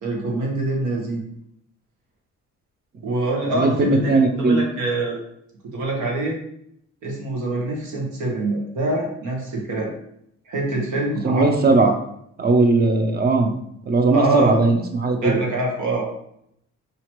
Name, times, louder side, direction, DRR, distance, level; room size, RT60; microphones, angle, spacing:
voice 1, 0.0-1.2 3.0-5.2 5.7-6.4 7.0-9.9 10.5-11.9 14.1-14.5 15.2-16.1, right 2 dB, 80° right, -1 dB, 1.4 m, -25 dB
voice 2, 3.5-4.6 11.2-11.9 12.4-13.5 13.9-15.3, right 3 dB, 30° right, 5 dB, 0.7 m, -18 dB
5.0 x 2.8 x 3.1 m, 0.73 s
cardioid pair, 90°, 30 cm